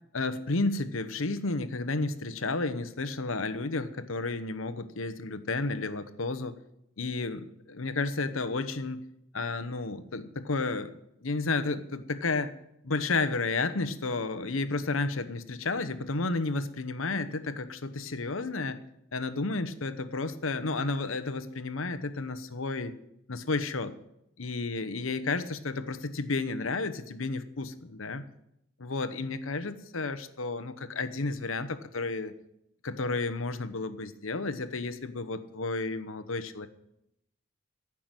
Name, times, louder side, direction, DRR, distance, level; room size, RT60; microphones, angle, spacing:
voice 1, 0.1-6.5 7.0-9.0 9.3-10.9 11.2-12.5 12.8-18.8 19.1-22.9 23.3-23.9 24.4-28.2 28.8-32.3 32.8-36.7, left 3 dB, 90° left, 12 dB, 1.0 m, -32 dB
15.0 x 6.0 x 9.0 m, 0.79 s
head